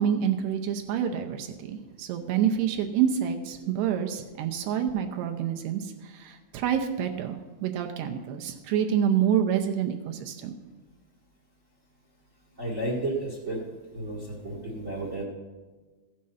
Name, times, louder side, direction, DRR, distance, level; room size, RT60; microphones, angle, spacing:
voice 1, 0.0-5.8 6.1-10.5, right 9 dB, 80° right, 5 dB, 2.8 m, -27 dB
voice 2, 12.6-13.6 13.9-15.2, right 2 dB, 50° right, -3 dB, 0.9 m, -32 dB
15.0 x 7.6 x 5.6 m, 1.3 s
omnidirectional pair, 4.8 m